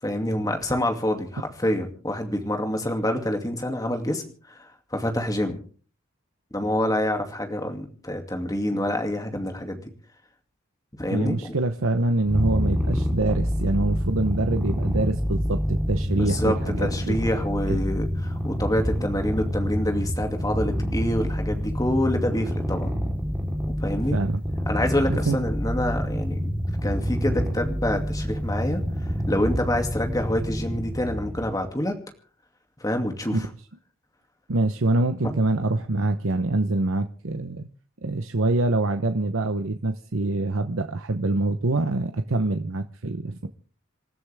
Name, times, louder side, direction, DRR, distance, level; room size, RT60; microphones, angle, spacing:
voice 1, 0.0-5.6 6.5-9.9 11.0-11.6 16.1-22.9 23.8-24.2 24.7-26.4 26.8-32.0 32.8-33.5, left 1 dB, 15° left, 4 dB, 2.4 m, -27 dB
voice 2, 11.1-17.2 17.7-17.8 24.1-24.4 25.3-25.4 33.3-33.4 34.5-37.7 38.0-43.5, right 2 dB, 80° right, 7 dB, 0.9 m, -25 dB
Purr, 12.2-31.6, equal, 5° right, 3.7 m, -27 dB
27.5 x 13.5 x 3.5 m, 0.41 s
head